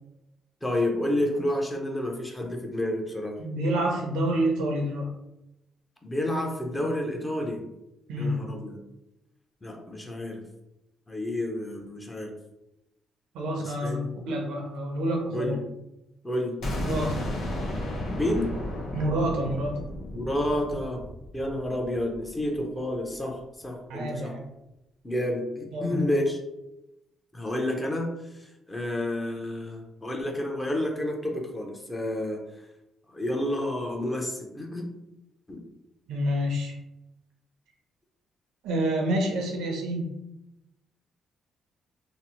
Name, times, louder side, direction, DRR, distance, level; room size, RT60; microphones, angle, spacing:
voice 1, 0.6-3.4 6.0-7.6 8.2-8.8 9.6-10.4 11.1-12.3 13.6-14.1 15.3-15.6 16.2-16.6 18.1-18.5 20.1-21.0 21.3-24.3 25.0-26.4 27.3-32.4 33.1-34.9 35.5-35.6, left 1 dB, 15° left, 1 dB, 0.6 m, -30 dB
voice 2, 3.4-5.1 8.1-8.4 13.3-15.6 16.7-17.2 18.9-19.8 23.9-24.4 25.7-26.1 36.1-36.7 38.6-40.1, right 1 dB, 90° right, 1 dB, 0.6 m, -28 dB
sound 1, 16.6-22.4, left 1 dB, 80° left, 0.8 m, -33 dB
2.8 x 2.0 x 2.9 m, 0.91 s
cardioid pair, 90°, 0 cm